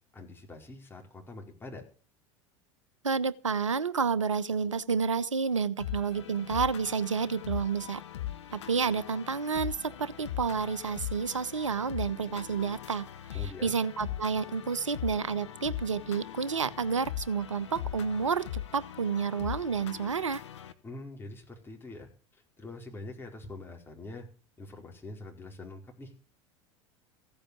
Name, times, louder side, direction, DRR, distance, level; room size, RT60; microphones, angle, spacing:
voice 1, 0.0-1.8 13.3-13.7 20.8-24.2 24.6-26.1, left 2 dB, 15° left, 4.6 m, -44 dB
voice 2, 3.0-8.0 8.5-13.0 13.6-20.4, right 5 dB, 75° right, 0.9 m, -30 dB
sound 1, 5.8-20.7, left 12 dB, 65° left, 1.3 m, -40 dB
15.5 x 8.9 x 6.9 m
figure-of-eight pair, 75°, 16 cm